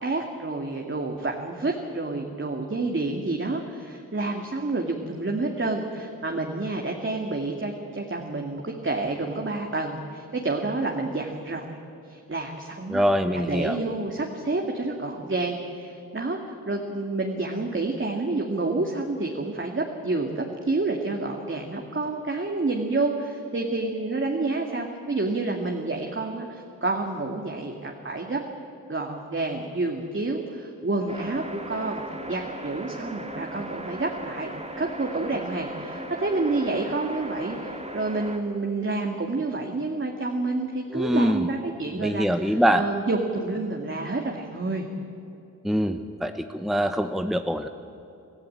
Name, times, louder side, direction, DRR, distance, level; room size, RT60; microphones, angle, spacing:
voice 1, 0.0-11.7 12.1-28.4 28.9-32.0 32.3-34.5 34.8-44.9, right 2 dB, 35° right, 1 dB, 2.2 m, -29 dB
voice 2, 12.9-13.8 40.9-41.5 41.9-42.8 45.6-47.7, equal, ahead, 7 dB, 0.9 m, -24 dB
sound 1, 31.1-38.4, right 1 dB, 20° right, 2.5 m, -37 dB
25.0 x 15.0 x 8.8 m, 2.7 s
cardioid pair, 60°, 34 cm